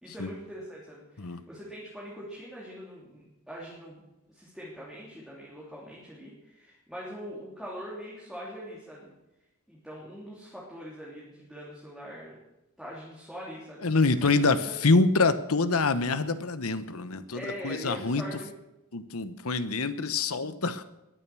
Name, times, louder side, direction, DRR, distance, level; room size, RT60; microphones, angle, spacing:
voice 1, 0.0-4.0 4.3-9.1 9.7-12.4 12.8-14.7 17.3-18.5, equal, ahead, -7 dB, 3.6 m, -42 dB
voice 2, 13.8-14.6 14.8-18.2 18.9-20.8, left 3 dB, 70° left, 11 dB, 1.1 m, -25 dB
21.0 x 9.0 x 6.3 m, 0.95 s
head